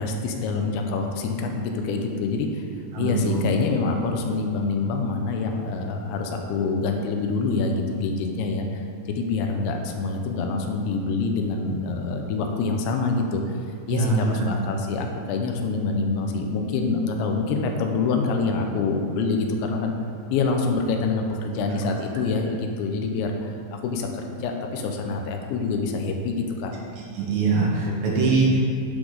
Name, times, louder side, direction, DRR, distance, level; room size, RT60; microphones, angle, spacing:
voice 1, 0.0-2.6 3.0-13.6 13.9-20.0 20.3-26.7 27.9-28.1, left 4 dB, 85° left, 3 dB, 3.0 m, -26 dB
voice 2, 2.9-3.4 13.9-14.6 27.2-28.6, right 4 dB, 80° right, -4 dB, 3.4 m, -22 dB
12.0 x 5.0 x 3.9 m, 2.3 s
omnidirectional pair, 5.1 m